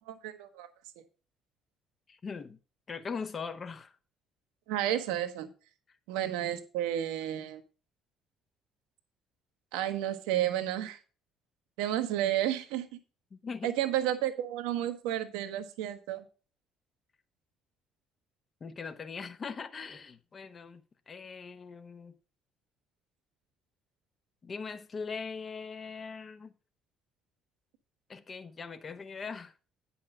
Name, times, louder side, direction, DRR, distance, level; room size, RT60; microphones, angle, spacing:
voice 1, 0.1-0.7 4.7-5.5 6.1-7.6 9.7-11.0 11.8-12.9 13.6-16.2, right 12 dB, 70° right, 1.0 m, -31 dB
voice 2, 2.1-2.6 2.9-4.0 13.3-13.7 18.6-22.2 24.4-26.5 28.1-29.5, left 5 dB, 35° left, 1.0 m, -41 dB
9.6 x 5.9 x 5.4 m
figure-of-eight pair, 50°, 0 cm